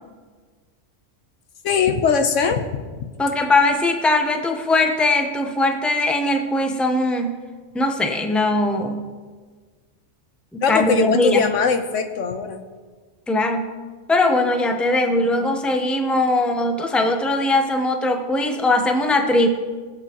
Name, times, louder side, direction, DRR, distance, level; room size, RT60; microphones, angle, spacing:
voice 1, 1.6-2.8 10.6-12.6, left 5 dB, 80° left, 7 dB, 1.2 m, -21 dB
voice 2, 3.2-7.3 7.7-9.1 10.5-11.5 13.3-13.7 14.1-19.5, left 2 dB, ahead, 4 dB, 0.7 m, -20 dB
22.0 x 7.9 x 3.0 m, 1.5 s
omnidirectional pair, 1.3 m